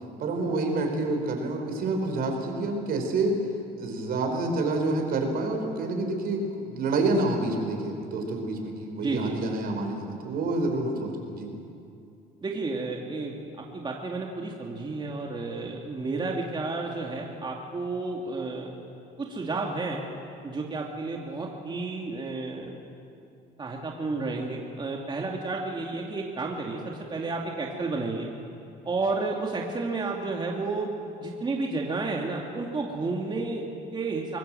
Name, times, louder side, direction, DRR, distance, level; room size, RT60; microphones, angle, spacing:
voice 1, 0.2-3.4 3.8-11.5, right 2 dB, 65° right, 3 dB, 4.8 m, -28 dB
voice 2, 9.0-9.4 12.4-18.8 19.2-20.0 20.4-22.8 23.6-28.3 28.8-30.9 31.2-34.4, right 3 dB, 25° right, -1 dB, 2.5 m, -31 dB
24.5 x 19.5 x 7.8 m, 2.6 s
cardioid pair, 110°, 17 cm